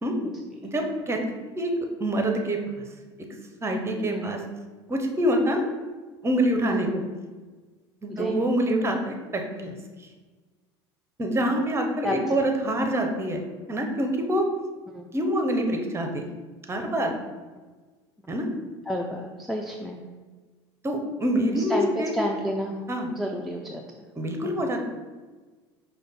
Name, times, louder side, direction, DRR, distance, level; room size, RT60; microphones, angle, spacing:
voice 1, 0.6-1.2 1.5-1.7 2.0-2.6 3.6-4.4 4.9-5.6 6.2-6.9 8.0-9.7 11.2-13.4 13.7-14.5 15.1-16.3 16.7-17.1 18.3-18.5 20.8-22.1 22.9-23.1 24.2-24.9, right 1 dB, 20° right, 3 dB, 0.7 m, -25 dB
voice 2, 6.7-7.1 8.1-8.4 12.0-12.4 14.9-15.0 18.9-20.0 21.6-22.8 23.1-24.1 24.4-24.5, equal, ahead, 1 dB, 0.4 m, -31 dB
4.9 x 2.3 x 4.1 m, 1.3 s
hypercardioid pair, 85°, 14 cm